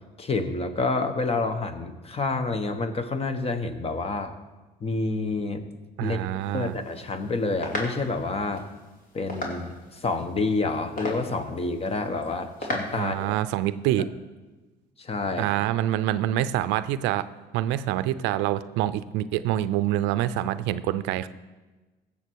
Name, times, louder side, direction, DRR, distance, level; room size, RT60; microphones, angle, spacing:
voice 1, 0.2-4.3 4.8-5.6 6.0-6.2 6.5-8.6 9.1-13.3 15.0-15.5, left 3 dB, 35° left, 9 dB, 1.1 m, -28 dB
voice 2, 6.0-6.8 13.0-14.1 15.4-17.3 17.5-21.3, right 13 dB, 85° right, 14 dB, 0.5 m, -26 dB
sound 1, 6.4-13.3, left 1 dB, 50° left, 2.7 m, -38 dB
15.5 x 7.2 x 4.6 m, 1.2 s
supercardioid pair, 80°, 18 cm